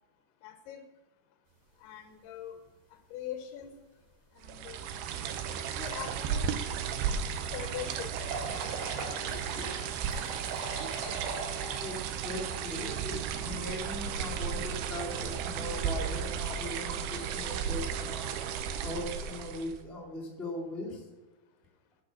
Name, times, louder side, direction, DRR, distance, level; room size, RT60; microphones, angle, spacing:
voice 1, 0.4-0.8 1.8-2.6 3.1-3.8 4.4-4.9 5.8-6.4 7.5-8.1 9.3-9.6 20.9-21.0, left 10 dB, 80° left, 7 dB, 2.7 m, -42 dB
sound 1, 4.4-4.5 4.9-5.0 5.7-18.4, right 2 dB, 50° right, 3.8 m, -45 dB
sound 2, 4.4-19.8, right 7 dB, 85° right, 2.9 m, -34 dB
voice 2, 11.8-18.3 18.8-21.0, left 1 dB, ahead, -7 dB, 1.3 m, -39 dB
10.5 x 6.8 x 7.5 m, 1.2 s
omnidirectional pair, 4.8 m